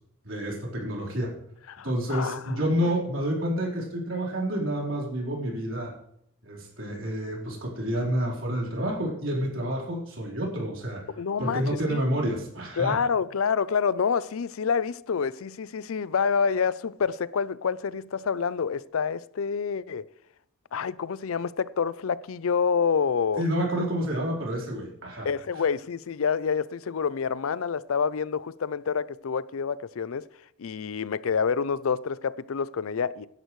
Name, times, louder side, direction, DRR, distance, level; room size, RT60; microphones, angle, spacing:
voice 1, 0.2-1.4 1.8-5.9 6.4-11.0 11.4-13.0 23.4-25.3 25.5-25.6, equal, 65° right, 4.2 m, -29 dB
voice 2, 1.7-2.7 11.1-12.0 12.8-20.1 20.7-23.4 25.2-30.3 30.6-33.3, left 6 dB, 75° left, 0.5 m, -27 dB
17.0 x 11.0 x 3.2 m
head